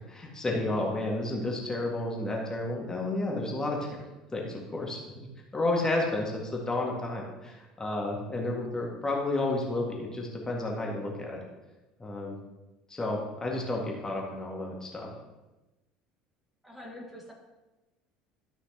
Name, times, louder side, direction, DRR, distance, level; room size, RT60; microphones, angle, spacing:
voice 1, 0.1-4.0 4.3-11.4 12.0-12.4 12.9-15.1, left 2 dB, 15° left, -1 dB, 1.9 m, -31 dB
voice 2, 16.6-17.3, left 1 dB, 5° right, -2 dB, 1.8 m, -44 dB
13.5 x 5.8 x 3.0 m, 1.1 s
figure-of-eight pair, 65°, 4 cm